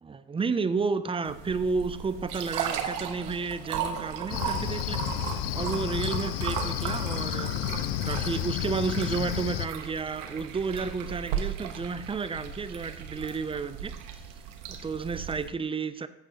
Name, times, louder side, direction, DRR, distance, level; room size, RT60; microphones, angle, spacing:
voice 1, 0.0-5.0 5.5-7.5 8.0-14.0 14.7-16.1, right 4 dB, 10° right, 13 dB, 0.5 m, -31 dB
sound 1, 1.3-15.5, right 9 dB, 55° right, 1.1 m, -36 dB
Cricket, 4.3-9.7, left 13 dB, 60° left, 0.6 m, -31 dB
14.5 x 6.5 x 2.8 m, 0.84 s
figure-of-eight pair, 55°, 47 cm